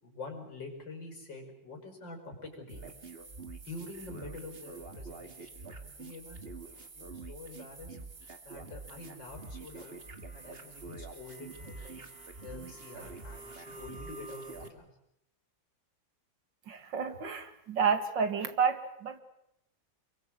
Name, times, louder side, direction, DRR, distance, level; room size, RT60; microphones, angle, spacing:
voice 1, 0.0-2.9 3.6-6.4 7.0-8.0 8.4-10.0 10.3-12.0 12.4-14.9, left 3 dB, 70° left, 2 dB, 6.0 m, -46 dB
sound 1, 2.7-14.7, right 3 dB, 30° right, 2.2 m, -46 dB
voice 2, 16.7-19.2, right 6 dB, 70° right, 8 dB, 2.6 m, -30 dB
28.0 x 22.5 x 7.7 m, 0.78 s
omnidirectional pair, 2.0 m